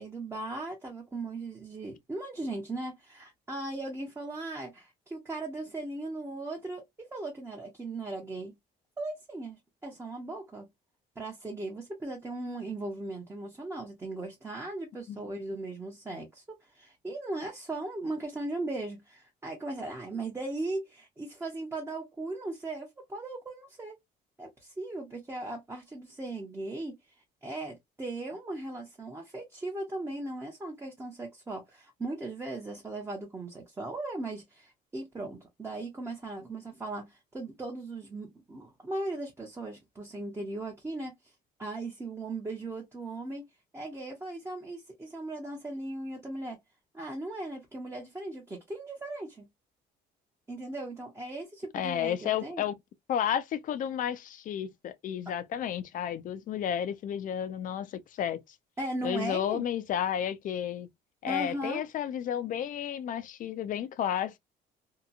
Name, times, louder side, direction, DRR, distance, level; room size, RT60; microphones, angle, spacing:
voice 1, 0.0-8.5 9.0-10.7 11.2-24.0 24.4-27.0 27.4-41.3 41.6-43.4 43.7-46.6 46.9-49.5 50.5-52.6 58.8-59.6 61.3-61.8, right 2 dB, 15° right, 0.7 m, -38 dB
voice 2, 51.7-52.7 53.1-58.4 59.0-60.9 61.2-64.4, left 9 dB, 50° left, 0.5 m, -32 dB
2.8 x 2.2 x 2.4 m
cardioid pair, 110°, 17 cm